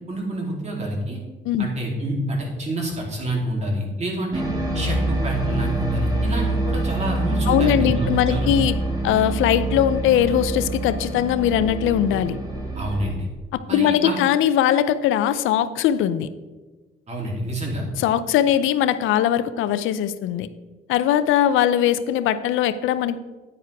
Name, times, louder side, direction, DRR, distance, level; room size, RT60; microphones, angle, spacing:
voice 1, 0.1-1.2 1.6-4.4 4.7-8.5 12.8-13.3 13.7-14.2 17.1-17.8, right 1 dB, 35° right, -1 dB, 3.0 m, -27 dB
sound 1, 4.3-13.1, right 2 dB, 20° right, 2.0 m, -26 dB
voice 2, 7.5-8.7 9.0-12.4 13.5-16.3 18.0-20.5 20.9-23.2, left 10 dB, 90° left, 14 dB, 0.5 m, -20 dB
9.8 x 9.3 x 3.4 m, 1.3 s
cardioid pair, 90°, 20 cm